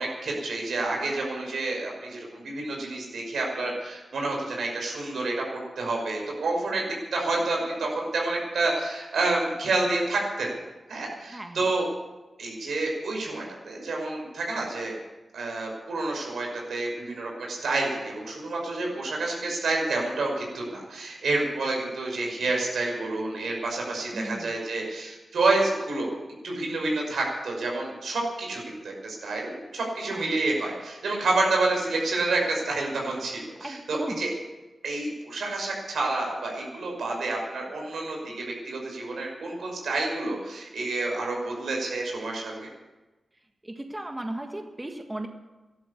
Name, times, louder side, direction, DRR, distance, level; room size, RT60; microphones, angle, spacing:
voice 1, 0.0-5.4 5.8-10.5 10.9-11.8 12.4-14.9 15.3-26.2 26.4-34.3 34.8-42.7, right 2 dB, 85° right, 0 dB, 5.7 m, -29 dB
voice 2, 11.3-11.7 24.1-24.5 30.1-30.4 33.6-34.2 37.8-38.1 43.6-45.3, right 1 dB, 15° right, 4 dB, 1.6 m, -36 dB
13.5 x 12.0 x 8.4 m, 1.1 s
cardioid pair, 75°, 0 cm